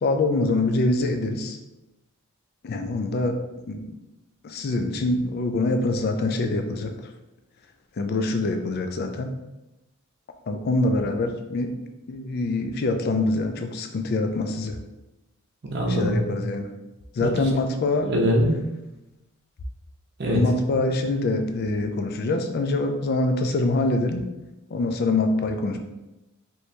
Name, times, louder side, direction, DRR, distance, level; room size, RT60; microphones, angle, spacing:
voice 1, 0.0-1.6 2.6-3.4 3.7-3.8 4.4-6.9 8.0-9.4 10.5-11.7 12.1-14.8 15.8-16.7 17.2-18.1 20.3-24.2 24.7-25.8, left 2 dB, 45° left, 6 dB, 0.3 m, -24 dB
voice 2, 15.6-16.4 17.2-17.3 18.0-18.6 20.2-20.4, equal, 50° right, 0 dB, 0.6 m, -23 dB
2.9 x 2.7 x 3.3 m, 0.99 s
head